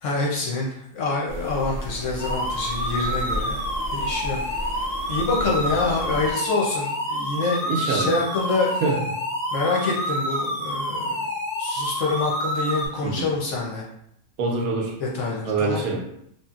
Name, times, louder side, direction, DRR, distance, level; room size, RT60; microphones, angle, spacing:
voice 1, 0.0-3.6 3.9-4.4 5.1-8.7 9.5-11.3 11.6-13.8 15.0-15.8, left 3 dB, 65° left, -3 dB, 0.9 m, -26 dB
sound 1, 1.3-6.3, equal, 50° right, 0.4 m, -34 dB
sound 2, 2.2-12.9, equal, 45° left, 0.5 m, -28 dB
voice 2, 7.7-8.1 8.8-9.2 13.0-13.3 14.4-15.0 15.5-16.1, right 3 dB, 75° right, 0 dB, 1.0 m, -25 dB
3.0 x 2.5 x 2.3 m, 0.74 s
omnidirectional pair, 1.6 m